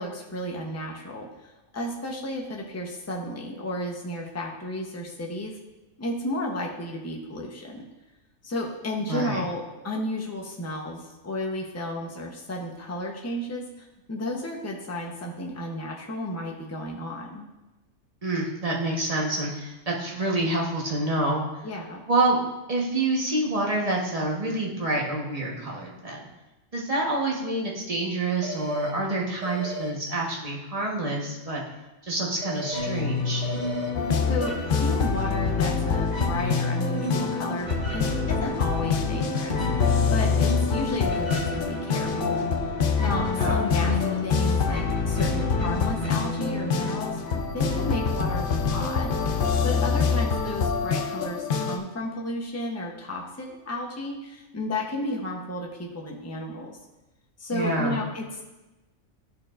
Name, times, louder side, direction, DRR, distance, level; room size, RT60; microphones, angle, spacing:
voice 1, 0.0-5.6 6.0-7.9 8.4-17.5 21.6-22.0 34.3-56.8 57.4-58.4, left 1 dB, 15° left, -1 dB, 0.7 m, -33 dB
voice 2, 9.1-9.4 18.2-21.4 22.1-22.4 22.7-26.3 26.7-31.6 32.0-33.4 43.4-43.7 57.5-58.0, right 2 dB, 30° right, -2 dB, 1.2 m, -27 dB
sound 1, 28.4-28.9 29.4-29.9 32.4-32.9 33.4-33.9, left 1 dB, 70° right, 1.3 m, -34 dB
sound 2, 32.7-48.2, left 3 dB, 35° left, 1.4 m, -32 dB
sound 3, 33.9-51.8, left 5 dB, 55° left, 0.6 m, -26 dB
12.5 x 4.4 x 2.5 m, 1.1 s
omnidirectional pair, 1.4 m